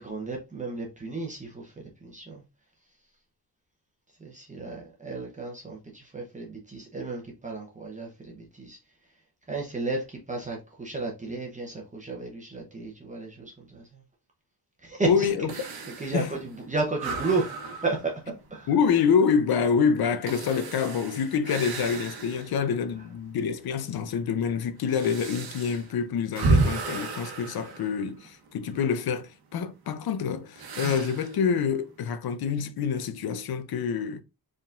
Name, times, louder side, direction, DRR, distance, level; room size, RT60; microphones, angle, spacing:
voice 1, 0.0-1.7 2.0-2.4 4.2-8.8 9.5-13.8 14.8-15.3 16.0-17.5 17.8-18.1 18.5-18.7, right 3 dB, 20° right, 0.8 m, -33 dB
voice 2, 15.0-15.5 16.1-16.3 18.7-34.2, left 6 dB, 70° left, 0.7 m, -26 dB
sound 1, 15.5-22.7 23.1-23.2 24.0-28.6 30.6-31.4, right 3 dB, 70° right, 1.1 m, -32 dB
4.6 x 3.8 x 2.5 m
wide cardioid pair, 175°, 38 cm